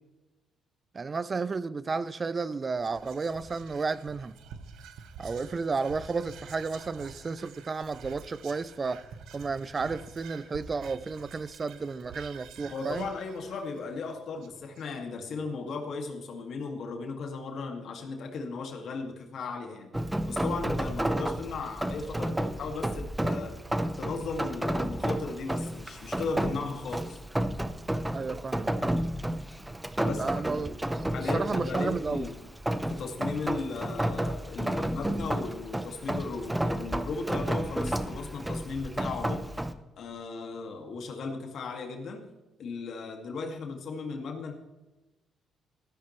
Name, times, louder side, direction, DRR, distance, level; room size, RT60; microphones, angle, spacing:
voice 1, 0.9-4.4 5.2-9.0 9.3-13.1 28.1-29.1 30.2-32.3, right 4 dB, 35° right, 0.6 m, -32 dB
Whispering, 2.7-15.2, right 6 dB, 85° right, 1.1 m, -48 dB
voice 2, 12.7-19.9 20.3-23.6 24.0-27.2 30.0-30.7 31.1-32.4 32.9-39.6 40.0-42.3 42.6-44.5, left 4 dB, 65° left, 2.2 m, -36 dB
Rain, 19.9-39.7, right 1 dB, 10° right, 0.9 m, -31 dB
14.0 x 13.0 x 3.2 m
cardioid pair, 90°, 0 cm